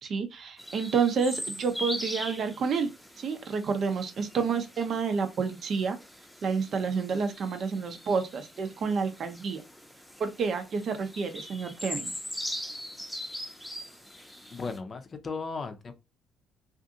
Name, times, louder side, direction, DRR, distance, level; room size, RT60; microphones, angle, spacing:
voice 1, 0.0-2.9 3.2-6.0 6.4-9.6 10.2-12.1, right 5 dB, 55° right, 0.6 m, -29 dB
sound 1, 0.6-14.8, equal, 5° left, 0.7 m, -41 dB
voice 2, 14.5-15.9, left 4 dB, 40° left, 0.5 m, -36 dB
2.6 x 2.5 x 2.6 m
hypercardioid pair, 55°, 0 cm